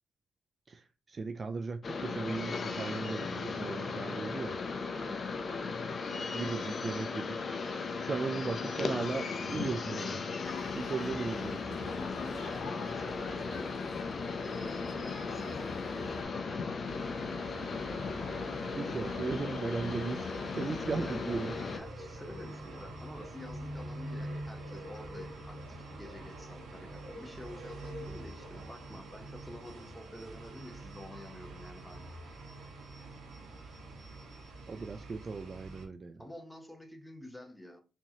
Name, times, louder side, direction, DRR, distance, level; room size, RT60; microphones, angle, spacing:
voice 1, 1.1-4.6 6.3-7.4 8.0-10.2 10.8-11.9 18.7-21.5 34.7-36.2, right 4 dB, 35° right, 0.3 m, -37 dB
sound 1, 1.8-21.8, left 4 dB, 40° left, 0.6 m, -37 dB
voice 2, 4.9-5.3 11.9-14.1 14.4-17.0 20.8-21.2 21.7-32.1 36.2-37.8, left 1 dB, 5° left, 0.9 m, -49 dB
sound 2, 10.4-16.2, left 4 dB, 75° left, 1.1 m, -46 dB
sound 3, 16.8-35.9, right 1 dB, 70° right, 1.4 m, -45 dB
4.5 x 2.9 x 2.8 m
cardioid pair, 90°, 0 cm